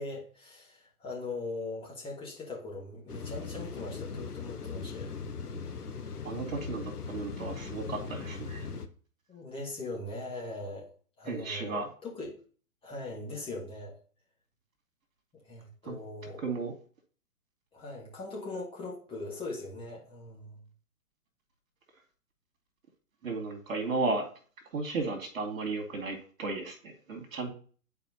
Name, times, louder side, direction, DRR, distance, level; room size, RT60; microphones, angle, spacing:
voice 1, 0.0-5.2 7.9-8.0 9.3-10.9 11.2-12.3 12.8-13.9 15.4-16.4 17.7-20.6, left 2 dB, 10° left, -4 dB, 1.7 m, -40 dB
sound 1, 3.1-8.9, left 5 dB, 85° left, 1.0 m, -39 dB
voice 2, 6.2-8.7 11.3-11.9 15.9-16.0 16.4-16.7 23.2-24.3 24.7-27.5, right 3 dB, 60° right, 4 dB, 2.2 m, -34 dB
10.5 x 4.5 x 2.8 m, 0.41 s
figure-of-eight pair, 125°, 45 cm